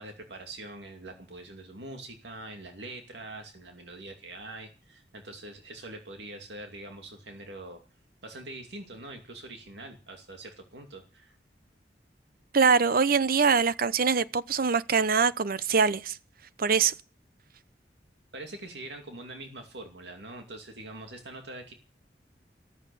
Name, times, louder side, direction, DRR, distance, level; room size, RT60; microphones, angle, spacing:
voice 1, 0.0-7.8 8.2-11.4 18.3-21.7, right 2 dB, 75° right, 2.5 m, -43 dB
voice 2, 12.5-16.2 16.6-16.9, right 5 dB, 55° right, 0.8 m, -23 dB
14.0 x 14.0 x 6.9 m
head